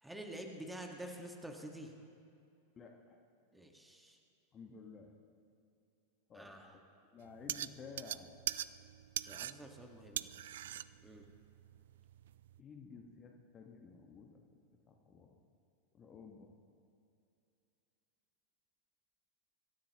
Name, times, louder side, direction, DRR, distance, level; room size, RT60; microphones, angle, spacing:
voice 1, 0.0-1.9 3.5-4.2 6.3-6.8 9.3-10.3 10.6-10.7 11.0-11.3, right 1 dB, 5° right, 3 dB, 1.6 m, -48 dB
voice 2, 2.8-3.2 4.5-5.1 6.3-6.5 7.1-8.3 12.6-14.4 14.9-15.4 15.9-16.5, left 5 dB, 25° left, 2 dB, 1.4 m, -53 dB
sound 1, 7.2-12.6, right 12 dB, 60° right, 0.3 m, -43 dB
25.0 x 13.5 x 3.0 m, 2.6 s
figure-of-eight pair, 90°, 0 cm